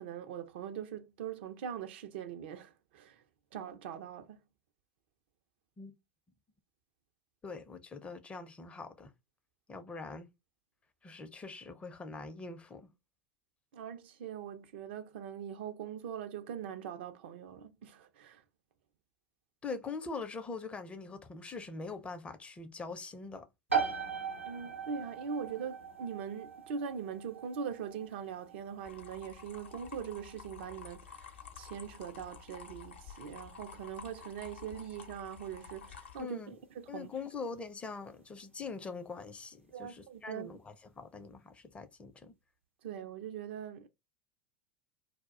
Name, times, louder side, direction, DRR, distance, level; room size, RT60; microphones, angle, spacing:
voice 1, 0.0-3.2 3.5-4.4 13.7-18.4 24.4-37.1 39.7-40.6 42.8-43.9, right 7 dB, 60° right, 0.5 m, -42 dB
voice 2, 7.4-9.1 9.7-10.3 11.0-12.9 19.6-23.5 36.2-36.6 36.9-42.3, left 4 dB, 20° left, 0.5 m, -43 dB
sound 1, 23.7-38.2, right 6 dB, 85° right, 0.8 m, -41 dB
sound 2, 28.8-36.2, left 6 dB, 65° left, 0.7 m, -51 dB
2.2 x 2.1 x 3.6 m
figure-of-eight pair, 80°, 7 cm